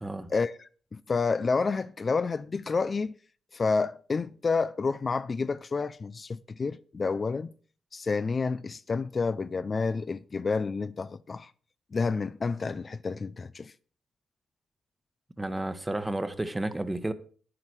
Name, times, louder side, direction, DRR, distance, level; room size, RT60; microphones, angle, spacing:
voice 1, 0.3-3.1 3.5-7.5 7.9-11.5 11.9-13.7, left 4 dB, 40° left, 0.5 m, -29 dB
voice 2, 15.4-17.1, right 1 dB, 15° right, 1.1 m, -31 dB
9.7 x 8.9 x 4.7 m
supercardioid pair, 55°, 0 cm